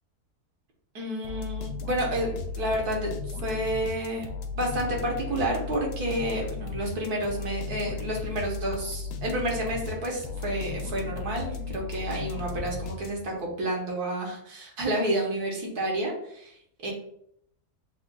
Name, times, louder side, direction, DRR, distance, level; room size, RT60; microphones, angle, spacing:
voice 1, 0.9-4.3 4.5-16.9, right 1 dB, 70° right, -1 dB, 1.6 m, -30 dB
sound 1, 1.2-13.5, left 4 dB, 85° left, 1.2 m, -35 dB
6.6 x 2.4 x 2.2 m, 0.70 s
omnidirectional pair, 1.8 m